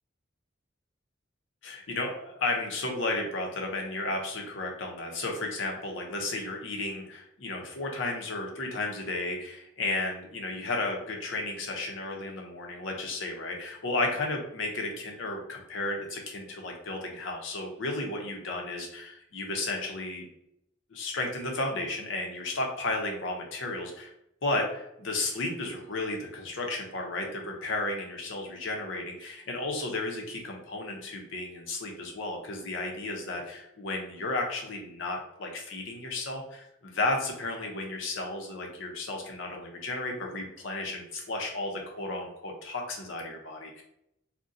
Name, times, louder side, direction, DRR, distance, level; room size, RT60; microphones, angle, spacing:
voice 1, 1.6-20.3 20.9-24.1 24.4-43.8, left 2 dB, 80° left, 1 dB, 0.7 m, -33 dB
2.6 x 2.1 x 3.7 m, 0.80 s
head